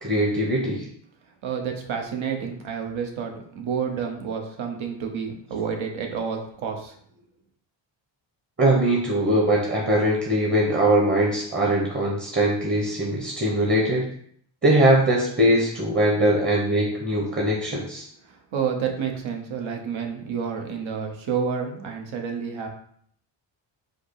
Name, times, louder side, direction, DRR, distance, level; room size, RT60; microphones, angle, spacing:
voice 1, 0.0-0.9 8.6-14.1 14.6-18.0, right 1 dB, 20° right, -2 dB, 1.0 m, -21 dB
voice 2, 1.4-6.9 18.2-22.7, right 6 dB, 70° right, 3 dB, 1.0 m, -29 dB
4.9 x 2.0 x 4.7 m, 0.64 s
cardioid pair, 80°, 49 cm